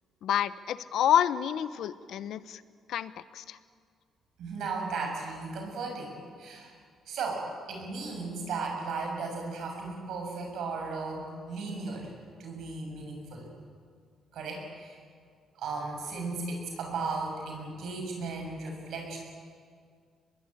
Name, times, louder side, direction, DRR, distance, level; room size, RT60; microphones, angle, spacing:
voice 1, 0.2-2.6 2.9-3.6, left 10 dB, 75° left, 14 dB, 0.9 m, -28 dB
voice 2, 4.4-6.7 7.1-12.1 12.4-13.5 14.3-15.0 15.5-19.2, right 4 dB, 75° right, 2 dB, 6.8 m, -36 dB
24.5 x 21.0 x 8.8 m, 2.1 s
cardioid pair, 90°, 0 cm